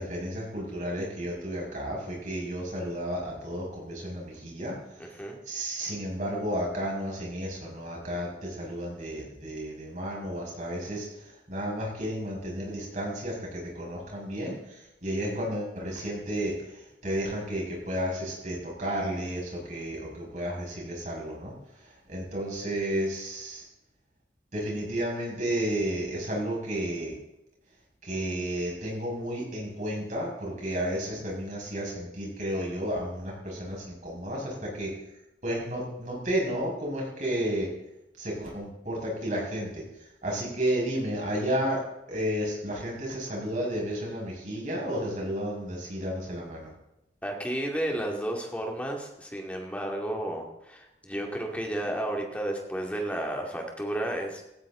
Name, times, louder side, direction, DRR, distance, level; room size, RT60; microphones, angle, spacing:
voice 1, 0.0-4.7 5.0-5.2 5.5-21.5 21.8-23.6 24.5-27.1 28.0-34.9 35.4-37.7 38.2-39.8 40.2-41.8 42.1-46.7, equal, 40° right, -2 dB, 5.9 m, -32 dB
voice 2, 5.0-5.4 47.2-54.4, right 1 dB, 5° left, 1 dB, 2.3 m, -32 dB
17.0 x 14.5 x 3.8 m, 0.88 s
head